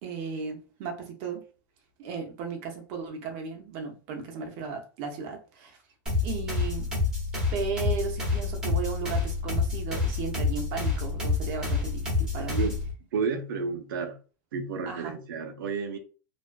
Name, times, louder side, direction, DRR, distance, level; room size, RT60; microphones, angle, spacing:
voice 1, 0.0-1.4 2.0-5.8 6.2-6.9 7.5-12.7 14.9-15.1, right 5 dB, 40° right, 0.7 m, -35 dB
sound 1, 6.1-12.9, left 4 dB, 5° right, 0.9 m, -28 dB
voice 2, 13.1-14.2 14.5-16.0, right 5 dB, 85° right, 0.6 m, -31 dB
2.4 x 2.2 x 2.4 m
supercardioid pair, 160°, 11 cm